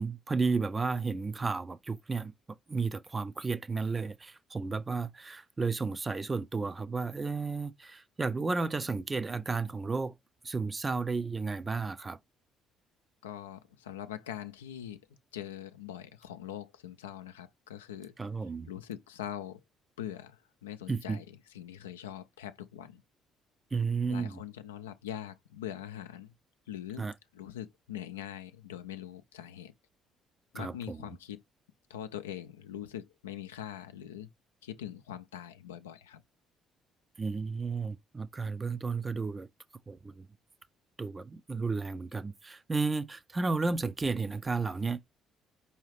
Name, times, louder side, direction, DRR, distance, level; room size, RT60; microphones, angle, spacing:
voice 1, 0.0-2.3 2.7-10.2 10.4-12.2 18.2-18.7 20.9-21.2 23.7-24.4 27.0-27.1 30.5-31.1 37.2-39.5 39.9-40.3 41.0-45.1, right 4 dB, 30° right, 0.5 m, -33 dB
voice 2, 13.2-15.0 15.3-18.1 18.7-19.6 20.0-21.3 21.5-23.0 24.1-26.3 26.7-29.7 30.5-31.4 31.9-34.3 34.6-36.2, left 10 dB, 90° left, 0.4 m, -42 dB
4.7 x 2.8 x 3.1 m
hypercardioid pair, 50°, 0 cm